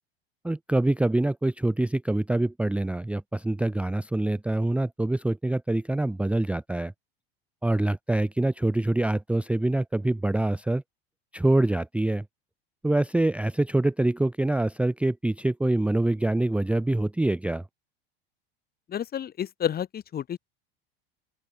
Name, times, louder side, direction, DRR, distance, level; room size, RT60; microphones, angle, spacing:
voice 1, 0.4-6.9 7.6-10.8 11.3-12.3 12.8-17.6, right 2 dB, 5° right, 0.7 m, -25 dB
voice 2, 18.9-20.4, left 9 dB, 30° left, 1.9 m, -30 dB
open air
figure-of-eight pair, 75°, 31 cm